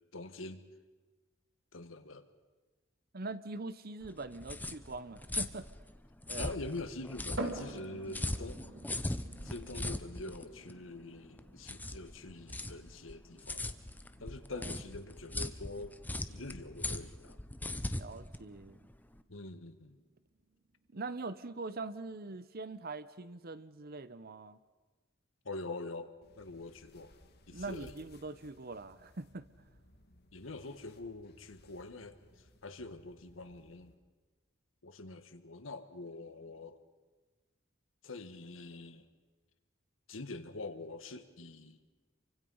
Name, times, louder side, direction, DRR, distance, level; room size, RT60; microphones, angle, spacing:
voice 1, 0.1-0.6 1.7-2.3 6.3-8.6 9.0-9.1 9.4-13.7 14.2-16.0 16.3-17.4 19.3-20.0 25.4-27.1 27.5-27.9 30.3-32.2 32.6-33.9 34.8-36.8 38.0-39.1 40.1-41.8, left 2 dB, 90° left, 9 dB, 1.6 m, -45 dB
voice 2, 3.1-5.7 6.3-6.6 14.5-14.7 17.9-18.9 20.9-24.6 27.5-29.5, right 3 dB, 50° right, 14 dB, 0.9 m, -43 dB
sound 1, 4.0-19.2, left 1 dB, 10° left, 0.8 m, -40 dB
sound 2, 7.4-20.9, right 2 dB, 80° right, 2.6 m, -49 dB
sound 3, 26.2-34.0, left 1 dB, 55° left, 1.9 m, -62 dB
28.0 x 24.5 x 5.6 m, 1.3 s
head